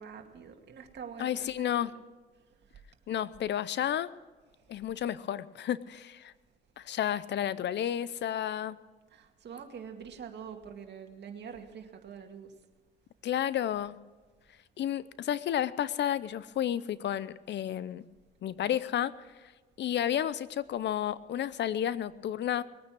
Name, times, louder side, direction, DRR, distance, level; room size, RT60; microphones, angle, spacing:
voice 1, 0.0-1.9 2.6-2.7 9.1-12.5, right 7 dB, 60° right, 3 dB, 2.2 m, -45 dB
voice 2, 1.2-1.9 3.1-4.1 4.7-6.3 6.8-8.8 13.2-14.0 14.8-18.0 18.4-19.1 19.8-22.6, left 10 dB, 65° left, 17 dB, 0.7 m, -31 dB
20.5 x 9.5 x 6.3 m, 1.3 s
cardioid pair, 90°, 20 cm